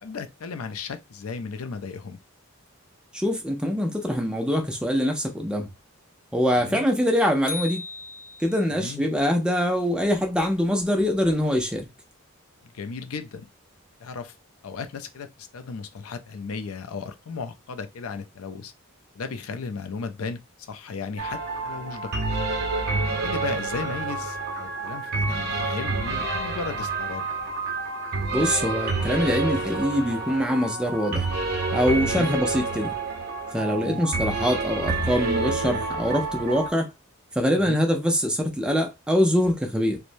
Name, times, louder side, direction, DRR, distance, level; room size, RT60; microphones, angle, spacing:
voice 1, 0.0-2.2 6.5-6.8 8.8-9.0 12.6-13.5 14.0-14.3 14.6-18.7 19.1-22.1 23.2-27.3 32.1-32.4 33.7-34.0 37.6-37.8, left 5 dB, 75° left, 0.5 m, -35 dB
voice 2, 3.1-5.7 6.3-7.8 8.4-11.9 28.3-31.2 31.7-32.9 33.5-36.9 37.3-40.0, equal, 5° right, 0.5 m, -24 dB
sound 1, 7.5-8.9, left 4 dB, 40° left, 0.8 m, -36 dB
sound 2, 21.2-36.7, right 3 dB, 45° right, 0.7 m, -28 dB
3.1 x 2.1 x 2.5 m
head